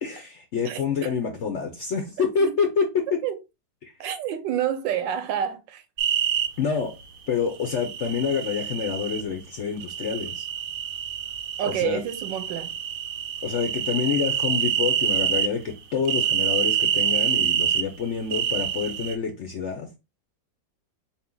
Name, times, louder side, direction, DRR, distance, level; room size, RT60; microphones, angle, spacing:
voice 1, 0.0-3.2 3.8-3.9 6.6-6.9 7.3-10.4 11.6-12.0 13.4-19.9, left 6 dB, 60° left, 0.7 m, -27 dB
voice 2, 0.6-1.1 3.2-3.4 4.0-5.8 11.6-12.7, right 10 dB, 90° right, 1.4 m, -28 dB
sound 1, 6.0-6.5 7.6-9.2 9.8-11.8 12.1-15.5 16.0-17.8 18.3-19.1, right 9 dB, 70° right, 0.8 m, -26 dB
4.3 x 2.9 x 3.7 m
omnidirectional pair, 1.9 m